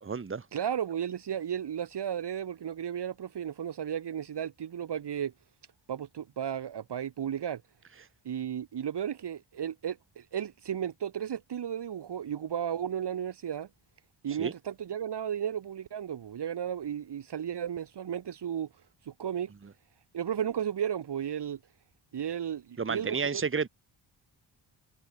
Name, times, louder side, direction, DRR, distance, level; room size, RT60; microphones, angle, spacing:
voice 1, 0.0-0.5 14.4-14.5 22.8-23.7, right 5 dB, 25° right, 1.3 m, -31 dB
voice 2, 0.5-5.3 5.9-7.6 8.2-13.7 14.2-18.7 19.1-19.5 20.1-21.6 22.1-23.4, right 9 dB, 60° right, 1.2 m, -34 dB
cardioid pair, 80°, 47 cm